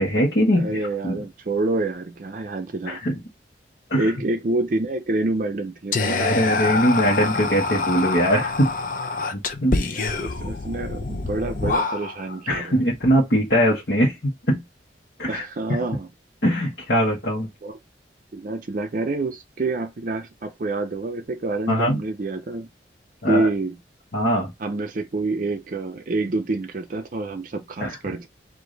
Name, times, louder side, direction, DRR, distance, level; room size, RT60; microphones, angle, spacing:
voice 1, 0.0-0.8 1.0-1.2 2.9-3.2 3.9-4.1 6.2-8.7 9.3-9.8 12.5-14.6 15.2-15.4 16.4-17.5 21.7-22.0 23.2-23.5 24.1-24.5 27.8-28.0, equal, 65° left, 1.3 m, -21 dB
voice 2, 0.5-3.2 3.9-6.3 9.7-12.9 15.2-16.1 17.6-17.8 18.3-22.7 23.3-23.8 24.6-28.3, right 2 dB, 50° right, 0.5 m, -27 dB
Whispering, 5.9-12.4, left 3 dB, 50° left, 0.6 m, -26 dB
4.9 x 2.6 x 3.9 m
head